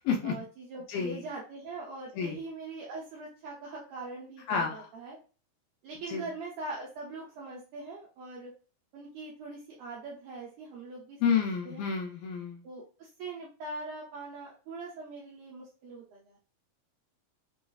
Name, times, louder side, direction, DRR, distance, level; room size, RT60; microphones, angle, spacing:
voice 1, 0.2-5.2 5.8-8.5 8.9-11.8 12.6-16.4, right 3 dB, 75° right, -3 dB, 1.9 m, -42 dB
voice 2, 0.9-1.2 2.2-2.4 4.5-4.9 6.1-6.3 11.2-12.6, left 6 dB, 75° left, 1 dB, 2.2 m, -30 dB
5.9 x 2.4 x 2.3 m, 0.37 s
omnidirectional pair, 4.3 m